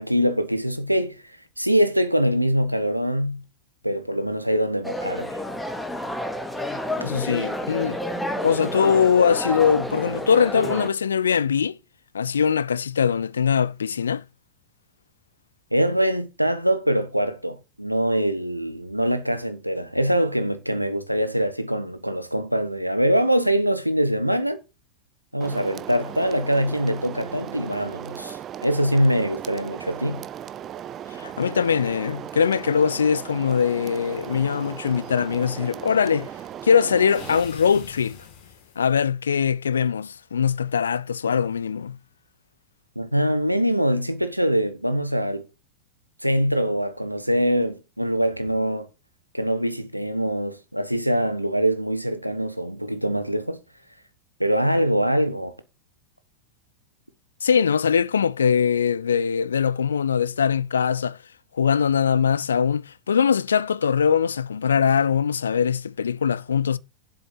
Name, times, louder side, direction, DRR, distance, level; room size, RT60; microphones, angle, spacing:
voice 1, 0.0-3.4 3.8-5.4 15.7-24.6 25.3-30.2 42.9-45.5 46.2-48.9 49.3-53.6 54.4-55.5, equal, 90° right, 1.1 m, -23 dB
sound 1, 4.8-10.9, equal, 5° left, 1.9 m, -30 dB
voice 2, 7.0-8.0 8.4-11.8 12.1-14.2 31.2-36.3 36.6-38.2 38.8-42.0 57.4-61.2 61.6-66.8, left 7 dB, 70° left, 0.5 m, -22 dB
sound 2, 25.4-37.4, right 10 dB, 30° right, 0.6 m, -37 dB
sound 3, 33.5-35.2 37.1-39.0, left 7 dB, 45° left, 2.6 m, -46 dB
7.8 x 6.5 x 6.5 m
figure-of-eight pair, 90°, 0 cm